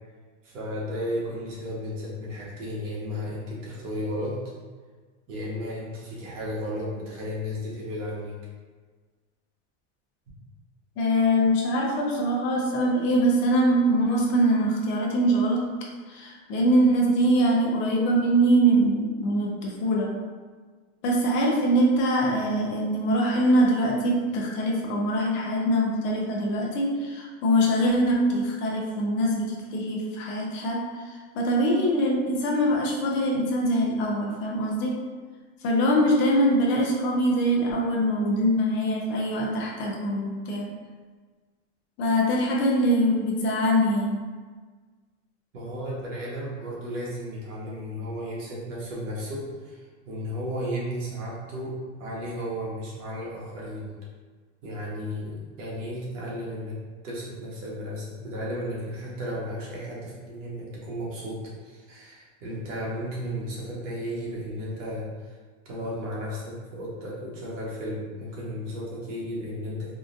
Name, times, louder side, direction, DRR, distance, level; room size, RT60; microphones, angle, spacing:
voice 1, 0.4-4.4 5.3-8.3 45.5-53.9 54.6-56.8 57.0-65.3 65.6-69.9, equal, 85° right, -5 dB, 1.3 m, -34 dB
voice 2, 11.0-15.6 16.1-20.1 21.0-35.0 35.6-40.7 42.0-44.2, right 1 dB, 35° left, -2 dB, 0.5 m, -23 dB
3.7 x 2.4 x 2.5 m, 1.5 s
supercardioid pair, 150°, 37 cm